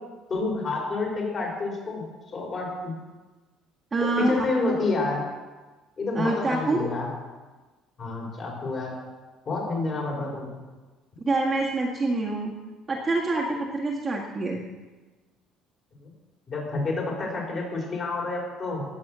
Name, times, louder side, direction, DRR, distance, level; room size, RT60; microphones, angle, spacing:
voice 1, 0.3-2.0 2.3-2.9 4.0-5.2 6.0-7.1 8.0-8.9 9.4-10.5 16.0-16.1 16.5-18.9, left 3 dB, 30° left, -1 dB, 5.0 m, -29 dB
voice 2, 3.9-4.5 6.2-6.8 11.2-12.5 12.9-14.6, right 2 dB, 20° right, -3 dB, 1.8 m, -26 dB
18.5 x 8.4 x 7.5 m, 1.3 s
cardioid pair, 170°, 0 cm